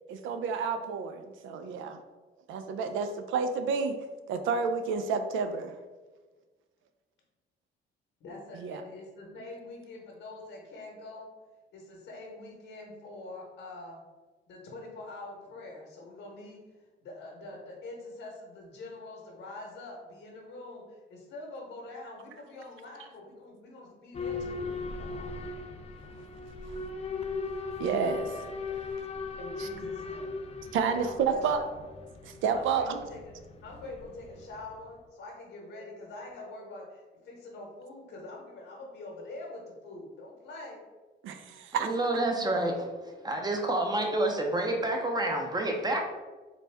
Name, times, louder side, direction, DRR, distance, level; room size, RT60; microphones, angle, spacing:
voice 1, 0.1-2.0 2.5-3.9 4.3-5.7 8.5-8.8 26.7-26.8 27.8-28.5 29.6-29.7 30.7-31.6 32.2-33.0 41.2-41.9, right 5 dB, 80° right, 8 dB, 0.4 m, -30 dB
voice 2, 8.2-11.3 11.7-14.0 14.5-16.6 17.0-24.7 25.0-25.4 29.4-30.5 30.9-31.8 32.5-33.3 33.6-40.8, left 2 dB, 80° left, -2 dB, 0.9 m, -45 dB
Boat Water vehicle / Alarm, 24.1-34.8, left 4 dB, 30° left, 0.4 m, -38 dB
voice 3, 41.8-42.9 43.2-46.0, right 1 dB, 20° right, 2 dB, 0.6 m, -28 dB
4.0 x 2.2 x 3.3 m, 1.3 s
cardioid pair, 90°, 20 cm